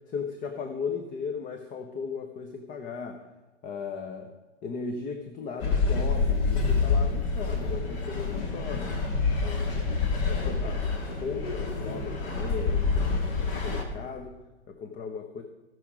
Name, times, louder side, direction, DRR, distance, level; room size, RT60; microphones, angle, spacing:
voice 1, 0.1-3.2 3.6-4.3 4.6-8.9 9.4-9.8 10.2-14.4 14.7-15.4, left 5 dB, 20° left, 5 dB, 0.8 m, -37 dB
sound 1, 5.6-13.8, left 4 dB, 50° left, 2.1 m, -27 dB
15.5 x 6.2 x 5.0 m, 1.1 s
hypercardioid pair, 115°, 37 cm